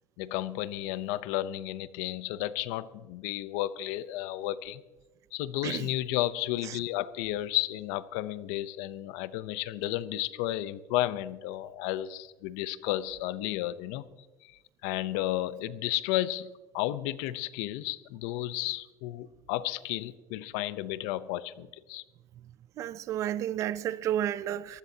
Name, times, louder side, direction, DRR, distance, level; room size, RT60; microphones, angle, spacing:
voice 1, 0.2-4.8 5.3-14.0 14.4-22.0, left 15 dB, 80° left, 0.7 m, -33 dB
voice 2, 22.8-24.8, right 11 dB, 35° right, 0.4 m, -31 dB
22.5 x 15.5 x 2.8 m
cardioid pair, 180°, 9 cm